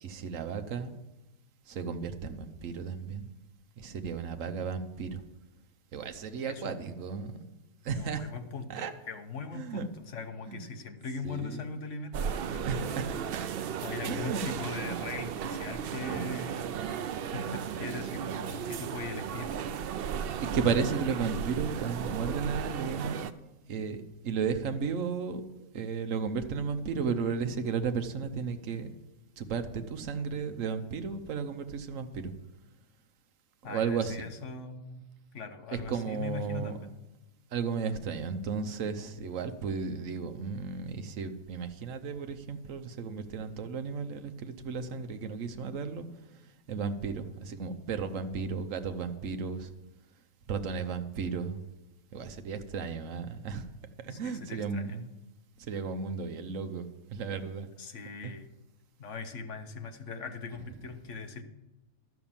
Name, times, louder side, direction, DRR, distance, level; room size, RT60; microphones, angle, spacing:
voice 1, 0.0-1.0 1.7-3.3 3.8-5.2 5.9-7.4 7.8-8.3 8.7-8.9 9.5-9.9 10.5-10.6 11.2-11.6 12.6-13.7 14.1-14.4 14.8-14.9 16.1-16.3 17.4-17.5 20.4-23.2 23.7-28.9 29.4-32.3 33.6-34.3 35.7-36.8 37.5-46.1 46.7-49.7 50.5-51.6 52.1-53.7 54.0-55.1 55.6-57.7 58.2-58.3, right 5 dB, 60° right, 7 dB, 1.2 m, -34 dB
voice 2, 6.4-6.9 7.9-13.4 13.8-17.0 17.3-19.6 33.6-35.1 35.3-36.9 54.1-55.0 57.8-58.5 59.0-61.4, left 4 dB, 55° left, 7 dB, 1.2 m, -40 dB
sound 1, 12.1-23.3, right 8 dB, 90° right, 0.5 m, -35 dB
12.5 x 6.0 x 7.2 m, 1.0 s
omnidirectional pair, 1.6 m